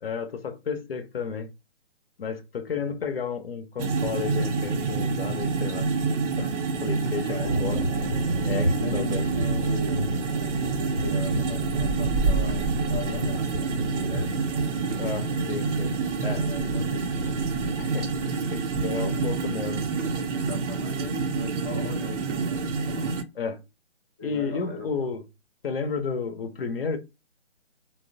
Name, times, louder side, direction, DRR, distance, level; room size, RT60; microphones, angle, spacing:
voice 1, 0.0-1.5 2.2-5.9 6.4-6.5 6.8-7.8 8.5-9.2 15.0-16.5 17.8-19.9 23.3-23.6 24.2-25.2 25.6-27.0, left 5 dB, 55° left, 0.6 m, -32 dB
sound 1, 3.8-23.2, right 4 dB, 85° right, 0.6 m, -28 dB
voice 2, 7.3-7.8 8.6-14.8 16.4-17.5 18.8-19.5 20.0-23.1 24.2-25.2, left 3 dB, 5° left, 0.4 m, -39 dB
sound 2, 7.4-18.4, right 1 dB, 40° right, 0.7 m, -31 dB
2.8 x 2.0 x 2.6 m
hypercardioid pair, 150°, 36 cm